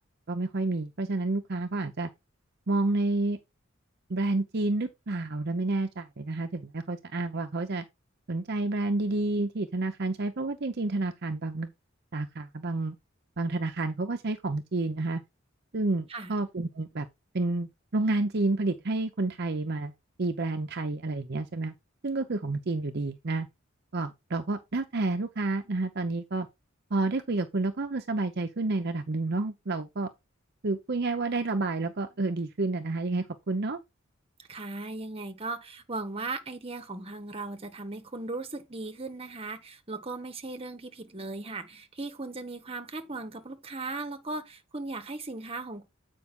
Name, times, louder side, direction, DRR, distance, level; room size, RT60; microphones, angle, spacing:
voice 1, 0.3-2.1 2.7-3.4 4.1-7.8 8.3-11.7 12.1-13.0 13.4-15.2 15.7-17.1 17.3-19.9 20.2-21.7 22.0-23.5 23.9-26.5 26.9-30.1 30.6-33.8, right 2 dB, 55° right, 0.7 m, -29 dB
voice 2, 34.4-45.9, right 3 dB, 30° right, 1.2 m, -37 dB
8.4 x 5.3 x 3.7 m
head